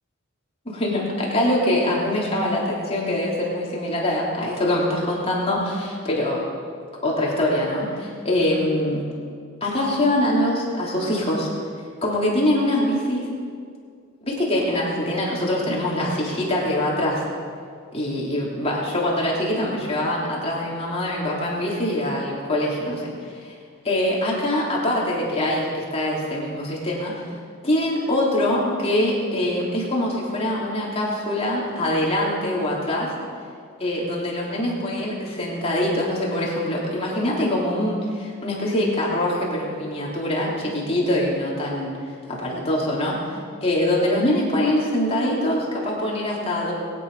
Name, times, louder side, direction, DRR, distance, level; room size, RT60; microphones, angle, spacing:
voice 1, 0.6-6.4 7.0-9.0 9.6-11.5 12.0-13.3 14.2-17.2 17.9-23.5 23.8-27.2 27.6-33.1 33.8-42.0 42.3-43.2 43.6-46.7, left 1 dB, 25° left, -4 dB, 3.2 m, -23 dB
21.5 x 9.8 x 5.6 m, 2.2 s
head